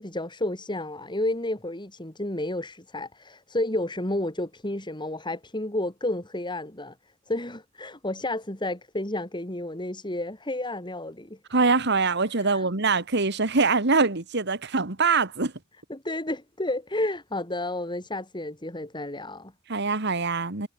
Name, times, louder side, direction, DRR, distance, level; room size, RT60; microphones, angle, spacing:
voice 1, 0.0-6.9 7.3-11.4 12.5-12.7 15.9-19.5, left 1 dB, 25° left, 5.0 m, -31 dB
voice 2, 11.5-15.5 19.7-20.7, right 4 dB, 60° right, 2.0 m, -23 dB
head